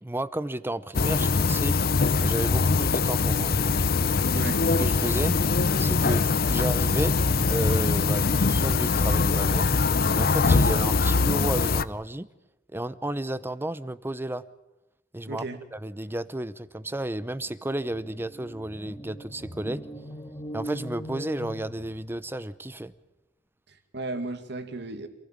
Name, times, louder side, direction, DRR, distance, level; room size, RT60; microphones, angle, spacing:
voice 1, 0.0-1.8 2.2-3.7 4.3-4.5 4.8-5.4 5.8-6.2 6.5-7.2 7.5-9.7 10.1-12.3 12.7-14.4 15.1-19.9 20.5-22.9, right 1 dB, 10° right, 0.8 m, -32 dB
sound 1, 0.9-11.8, left 4 dB, 55° left, 0.7 m, -23 dB
voice 2, 15.3-15.6 23.7-25.1, right 2 dB, 65° right, 2.3 m, -35 dB
sound 2, 16.9-17.0 17.3-22.3, equal, 20° left, 1.9 m, -41 dB
27.5 x 16.0 x 9.0 m
head